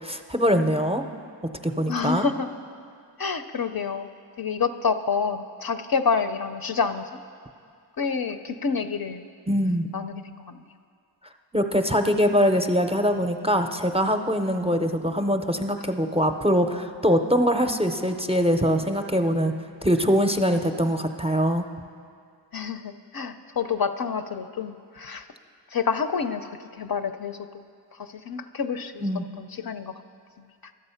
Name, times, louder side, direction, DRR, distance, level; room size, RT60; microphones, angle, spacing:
voice 1, 0.0-1.0 1.6-2.3 9.5-9.9 11.5-19.5 19.8-21.6 29.0-29.2, equal, 15° right, 6 dB, 0.5 m, -23 dB
voice 2, 1.9-2.5 3.2-4.1 4.4-7.1 8.0-9.3 9.9-10.6 22.5-25.3 25.7-27.6 27.9-29.0 29.4-29.9 30.4-30.5, left 5 dB, 55° left, 8 dB, 0.5 m, -28 dB
12.0 x 7.5 x 5.6 m, 2.2 s
wide cardioid pair, 45°, 44 cm